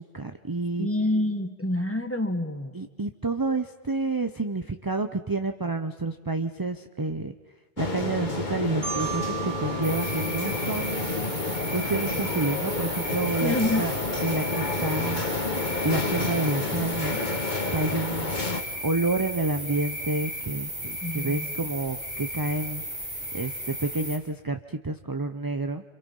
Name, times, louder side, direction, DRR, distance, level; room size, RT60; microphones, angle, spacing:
voice 1, 0.0-0.9 2.7-7.3 7.8-11.1 11.7-13.9 14.2-15.2 15.8-17.2 17.7-18.3 18.8-22.8 23.3-25.8, right 3 dB, 25° right, 7 dB, 0.7 m, -29 dB
voice 2, 0.8-2.7 13.4-13.9 21.0-21.5, left 1 dB, 15° left, 6 dB, 1.6 m, -27 dB
sound 1, 7.8-18.6, left 3 dB, 45° left, 1.9 m, -30 dB
Marimba xylophone, 8.8-11.7, right 10 dB, 85° right, 6.2 m, -37 dB
sound 2, 9.8-24.2, equal, 50° right, 5.9 m, -35 dB
29.0 x 27.0 x 5.5 m, 1.1 s
omnidirectional pair, 1.0 m